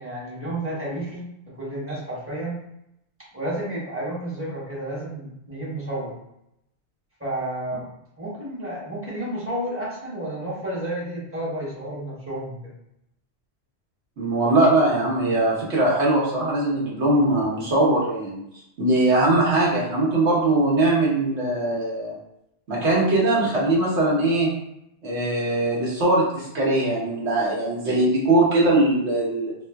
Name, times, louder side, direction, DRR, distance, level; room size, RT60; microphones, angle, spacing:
voice 1, 0.0-2.6 3.3-6.1 7.2-7.9 8.2-12.7, right 1 dB, 15° right, -8 dB, 0.9 m, -31 dB
voice 2, 14.2-18.4 18.8-22.1 22.7-24.5 25.0-29.6, right 2 dB, 90° right, -5 dB, 1.3 m, -21 dB
3.1 x 2.4 x 2.2 m, 0.79 s
omnidirectional pair, 1.1 m